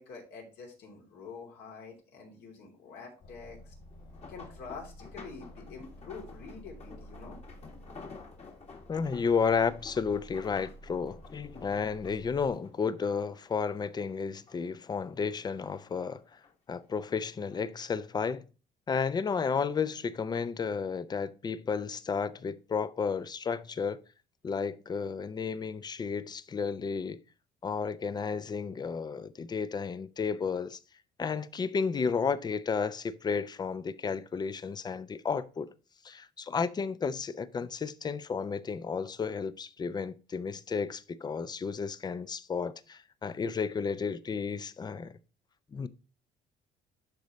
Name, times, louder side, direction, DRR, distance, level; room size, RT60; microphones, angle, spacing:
voice 1, 0.0-3.7 4.3-7.4, left 5 dB, 75° left, 3.0 m, -46 dB
Aircraft, 3.2-12.5, equal, 60° left, 3.4 m, -51 dB
sound 1, 3.9-13.5 13.8-14.8 15.2-16.5 17.3-17.6 18.0-18.1, left 4 dB, 40° left, 1.8 m, -51 dB
voice 2, 8.9-16.2 16.7-18.5 18.9-24.0 24.4-27.2 27.6-30.8 31.2-35.7 36.0-45.2 45.7-45.9, left 5 dB, 25° left, 0.5 m, -32 dB
11.5 x 4.0 x 3.1 m
cardioid pair, 110°, 17 cm